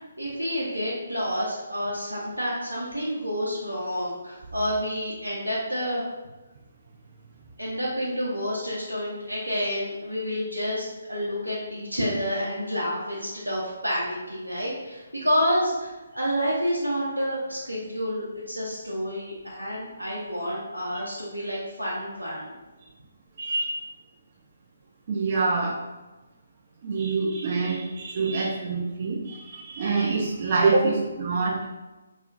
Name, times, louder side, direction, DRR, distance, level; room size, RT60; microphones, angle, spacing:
voice 1, 0.0-6.1 7.6-22.5, equal, 90° right, -6 dB, 0.6 m, -29 dB
voice 2, 23.4-23.9 25.1-25.8 26.8-31.7, right 3 dB, 40° right, -1 dB, 0.3 m, -26 dB
2.8 x 2.4 x 2.5 m, 1.1 s
figure-of-eight pair, 140°, 0 cm